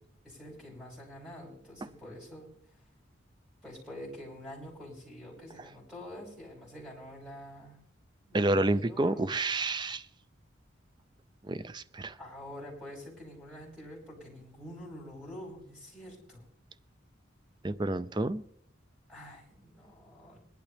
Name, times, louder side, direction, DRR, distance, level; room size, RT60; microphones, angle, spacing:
voice 1, 0.2-2.5 3.6-7.8 8.2-9.3 12.2-16.5 19.1-20.4, left 1 dB, 5° right, -2 dB, 5.9 m, -46 dB
voice 2, 8.3-10.1 11.4-12.2 17.6-18.4, right 2 dB, 25° right, 14 dB, 0.5 m, -29 dB
21.5 x 11.5 x 3.4 m, 0.69 s
head